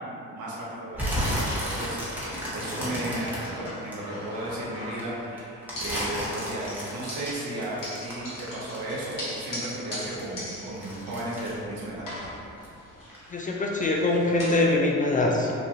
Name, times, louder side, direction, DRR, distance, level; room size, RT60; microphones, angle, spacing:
voice 1, 0.0-12.0, right 1 dB, 75° right, -6 dB, 0.9 m, -35 dB
sound 1, 0.9-4.5 5.0-9.7 10.0-12.7 13.0-13.4 13.8-13.9, equal, 5° right, 1.0 m, -33 dB
sound 2, 3.3-5.3 5.7-6.4 6.7-11.7 12.0-14.7, left 1 dB, 65° left, 1.1 m, -40 dB
voice 2, 13.3-15.5, left 2 dB, 25° left, -2 dB, 0.3 m, -23 dB
2.9 x 2.3 x 2.6 m, 2.6 s
supercardioid pair, 55°, 35 cm